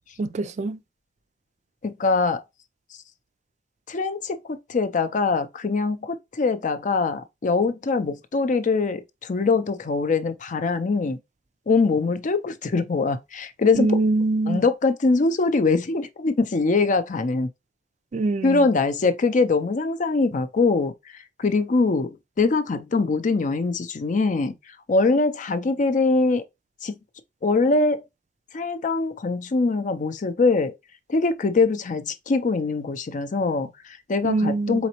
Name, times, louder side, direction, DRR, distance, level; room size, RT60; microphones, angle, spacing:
voice 1, 0.2-0.8 13.8-14.6 18.1-18.6 34.2-34.8, right 2 dB, 40° right, 0.3 m, -23 dB
voice 2, 1.8-2.4 3.9-11.2 11.7-13.9 14.5-17.5 18.4-26.4 26.8-26.9 27.4-28.0 28.5-30.8 31.1-34.9, left 3 dB, 45° left, 0.5 m, -23 dB
4.1 x 3.9 x 2.9 m
head